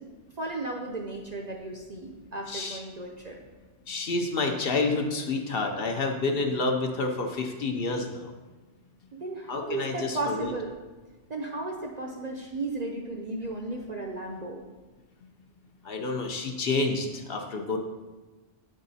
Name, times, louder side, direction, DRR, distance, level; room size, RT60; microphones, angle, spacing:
voice 1, 0.0-3.4 9.1-10.7 11.3-14.6, right 2 dB, 50° right, 1 dB, 0.5 m, -35 dB
voice 2, 2.5-2.8 3.9-8.3 9.5-10.5 15.8-17.8, left 3 dB, 60° left, 3 dB, 0.8 m, -29 dB
8.4 x 3.7 x 4.0 m, 1.2 s
omnidirectional pair, 1.2 m